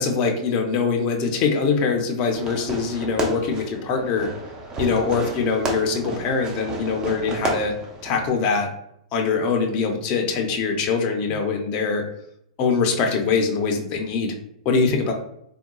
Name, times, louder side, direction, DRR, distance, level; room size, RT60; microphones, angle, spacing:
voice 1, 0.0-4.3 4.8-8.7 9.1-12.0 12.6-14.3 14.6-15.1, left 5 dB, 35° left, 2 dB, 0.5 m, -23 dB
Fireworks, 2.3-8.3, right 1 dB, 20° right, 0.5 m, -32 dB
3.8 x 2.2 x 2.3 m, 0.74 s
hypercardioid pair, 135°, 3 cm